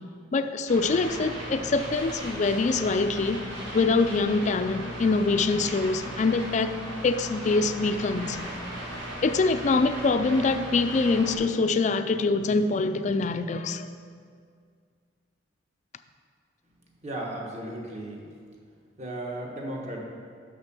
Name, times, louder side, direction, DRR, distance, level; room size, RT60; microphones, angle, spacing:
voice 1, 0.3-3.4 3.7-6.7 7.0-8.4 9.2-13.9, left 3 dB, 40° left, 10 dB, 0.3 m, -24 dB
sound 1, 0.7-11.4, equal, 75° right, 2.0 m, -37 dB
voice 2, 17.0-18.2 19.0-20.1, right 1 dB, 35° right, -2 dB, 1.3 m, -35 dB
6.5 x 6.2 x 6.1 m, 2.1 s
head